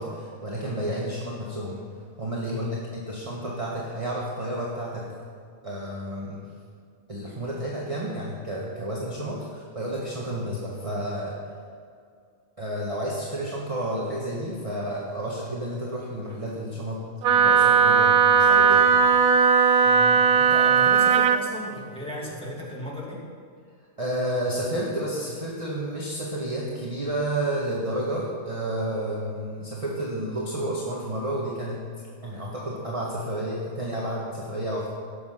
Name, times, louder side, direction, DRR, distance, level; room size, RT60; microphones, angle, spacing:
voice 1, 0.0-1.9 2.2-5.1 5.6-6.4 7.1-11.4 12.6-17.1 17.3-19.0 24.0-31.8 32.2-34.9, right 1 dB, 25° right, -5 dB, 1.6 m, -31 dB
Wind instrument woodwind instrument, 17.2-21.4, right 6 dB, 80° right, 1.1 m, -18 dB
voice 2, 19.8-23.2, left 1 dB, 5° left, -5 dB, 2.5 m, -36 dB
16.5 x 7.2 x 5.8 m, 2.2 s
omnidirectional pair, 1.5 m